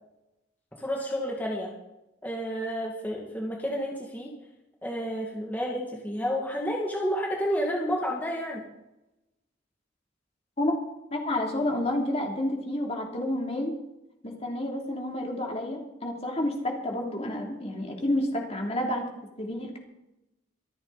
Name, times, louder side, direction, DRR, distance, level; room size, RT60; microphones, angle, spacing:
voice 1, 0.8-1.7 2.2-4.3 4.8-8.6, equal, 10° left, -2 dB, 2.1 m, -30 dB
voice 2, 11.1-13.7 14.2-19.0 19.4-19.8, left 1 dB, 35° left, 0 dB, 3.0 m, -29 dB
25.5 x 8.7 x 4.1 m, 0.92 s
head